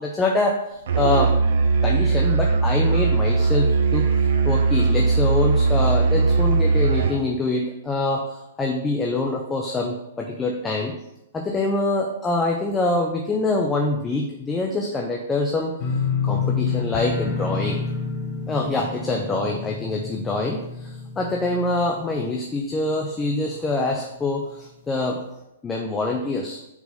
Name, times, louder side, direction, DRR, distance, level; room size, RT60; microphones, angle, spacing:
voice 1, 0.0-1.3 1.8-10.9 11.3-15.8 16.2-17.8 18.5-25.2 25.6-26.6, left 2 dB, 10° left, 0 dB, 0.4 m, -25 dB
Musical instrument, 0.9-7.2, right 4 dB, 65° right, 0.7 m, -19 dB
sound 1, 15.8-22.7 23.0-23.5 23.9-24.0, left 5 dB, 30° left, 0.9 m, -28 dB
4.7 x 4.0 x 5.4 m, 0.89 s
hypercardioid pair, 165°, 0 cm